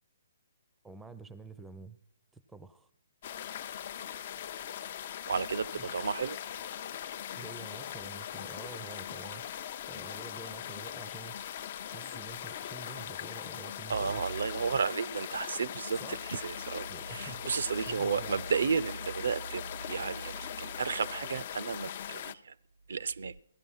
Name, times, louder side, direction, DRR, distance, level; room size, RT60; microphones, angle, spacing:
voice 1, 0.8-2.0 2.3-2.9 5.8-6.1 7.3-11.3 11.9-14.2 16.0-16.2 16.9-17.4 17.9-18.4, right 4 dB, 5° right, 0.5 m, -48 dB
sound 1, 3.2-22.3, left 10 dB, 50° left, 0.5 m, -41 dB
voice 2, 5.3-6.4 13.9-22.5 22.9-23.3, right 5 dB, 70° right, 0.4 m, -33 dB
16.0 x 11.5 x 5.6 m
hypercardioid pair, 145°, 0 cm